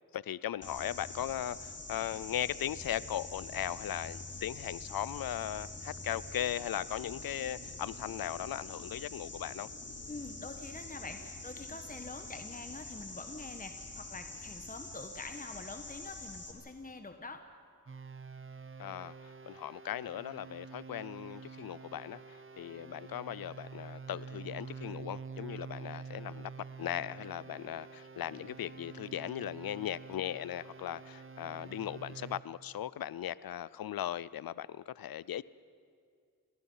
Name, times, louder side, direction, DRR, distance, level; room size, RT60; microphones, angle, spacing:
voice 1, 0.1-9.7 18.8-35.4, left 11 dB, 90° left, 20 dB, 0.5 m, -38 dB
sound 1, 0.6-16.5, left 2 dB, 45° left, 3.2 m, -45 dB
voice 2, 10.1-17.4, left 3 dB, 25° left, 6 dB, 1.3 m, -45 dB
sound 2, 17.9-32.4, right 5 dB, 35° right, 0.7 m, -47 dB
28.5 x 18.5 x 5.6 m, 2.3 s
cardioid pair, 50°, 34 cm